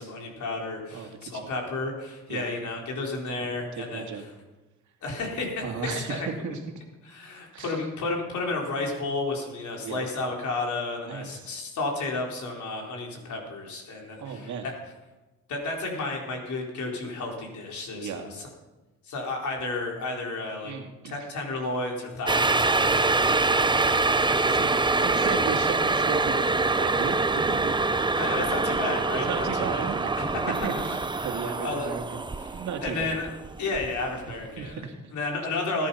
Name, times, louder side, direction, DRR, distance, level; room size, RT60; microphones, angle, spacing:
voice 1, 0.0-4.2 5.0-6.3 7.0-14.7 15.5-18.5 19.0-20.7 21.0-23.1 28.1-29.9 30.2-30.3 30.9-31.9 32.4-33.3 33.6-34.8 35.1-35.9, left 3 dB, 70° left, 0 dB, 4.4 m, -32 dB
voice 2, 0.9-1.4 2.3-2.5 3.4-4.2 5.6-6.8 7.5-7.8 9.8-10.0 11.1-11.5 14.2-14.7 17.9-18.3 20.6-21.3 22.8-23.8 24.4-28.0 29.1-30.1 30.6-31.0 31.2-32.0 32.5-33.1 34.6-35.0 35.4-35.6, right 6 dB, 75° right, 4 dB, 2.3 m, -35 dB
sound 1, 22.3-34.3 34.7-34.8, right 3 dB, 15° right, 0.8 m, -25 dB
20.0 x 10.5 x 5.7 m, 1.1 s
cardioid pair, 90°, 30 cm